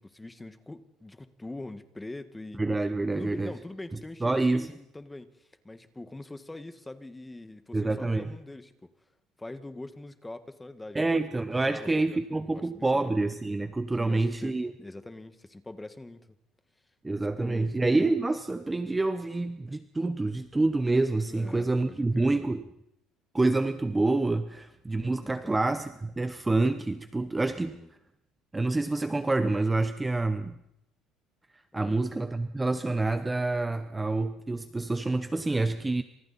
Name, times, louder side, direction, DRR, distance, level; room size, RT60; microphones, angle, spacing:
voice 1, 0.0-2.6 3.1-8.9 9.4-13.1 14.0-16.3 17.4-17.7 21.2-22.4 25.2-25.5 27.6-27.9 31.7-32.0, left 2 dB, 10° left, 10 dB, 1.6 m, -43 dB
voice 2, 2.6-3.5 4.2-4.7 7.7-8.3 10.9-14.7 17.0-22.6 23.3-27.8 28.5-30.5 31.7-36.0, right 2 dB, 10° right, 10 dB, 0.9 m, -27 dB
29.0 x 27.0 x 4.2 m, 0.81 s
cardioid pair, 145°, 0 cm